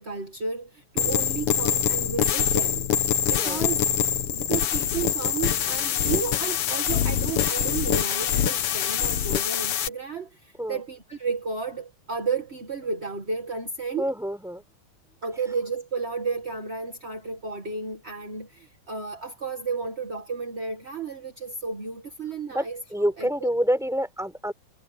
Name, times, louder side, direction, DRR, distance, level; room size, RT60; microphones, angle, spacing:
voice 1, 0.0-3.8 4.3-14.1 15.2-22.8 23.2-23.5, right 5 dB, 30° right, 1.3 m, -32 dB
sound 1, 1.0-9.9, left 9 dB, 60° left, 1.7 m, -24 dB
voice 2, 14.0-14.6 22.5-22.6 22.9-24.5, equal, ahead, 4.9 m, -27 dB
omnidirectional pair, 3.5 m